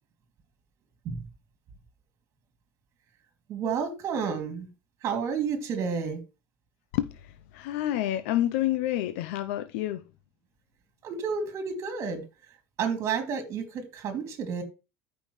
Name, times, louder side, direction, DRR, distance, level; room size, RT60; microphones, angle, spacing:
voice 1, 3.5-4.7 5.0-6.2 11.0-12.2 12.8-14.6, right 6 dB, 45° right, 2.6 m, -30 dB
voice 2, 6.9-10.0, left 13 dB, 85° left, 0.6 m, -29 dB
13.5 x 5.6 x 3.2 m
cardioid pair, 135°, 7 cm